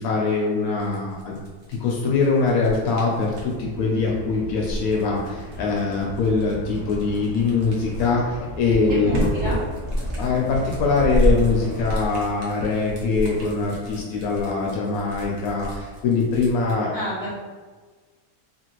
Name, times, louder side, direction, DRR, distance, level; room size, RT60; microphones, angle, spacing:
voice 1, 0.0-1.4 1.7-9.3 10.2-16.9, left 4 dB, 75° left, -2 dB, 1.0 m, -23 dB
sound 1, 0.8-3.6 4.5-8.3 8.7-16.8, equal, 55° right, 0.9 m, -30 dB
sound 2, 3.2-12.0, equal, 25° left, 0.7 m, -38 dB
sound 3, 8.3-10.6 10.9-13.3, equal, 45° left, 1.0 m, -30 dB
voice 2, 8.9-9.6 16.9-17.3, equal, 80° right, -7 dB, 1.6 m, -29 dB
2.9 x 2.5 x 2.9 m, 1.4 s
omnidirectional pair, 1.6 m